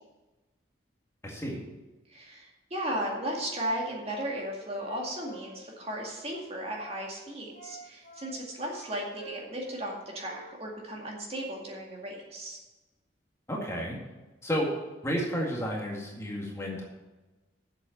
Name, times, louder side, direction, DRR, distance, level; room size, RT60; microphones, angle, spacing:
voice 1, 1.2-1.6 13.5-14.0 14.4-14.7 15.0-16.8, equal, 15° left, -2 dB, 1.9 m, -31 dB
voice 2, 2.1-12.6, right 1 dB, 30° right, -1 dB, 2.1 m, -35 dB
Wind instrument woodwind instrument, 3.4-7.0 7.5-10.0 10.2-11.5, right 2 dB, 40° left, 3.2 m, -51 dB
8.1 x 7.4 x 7.8 m, 1.1 s
head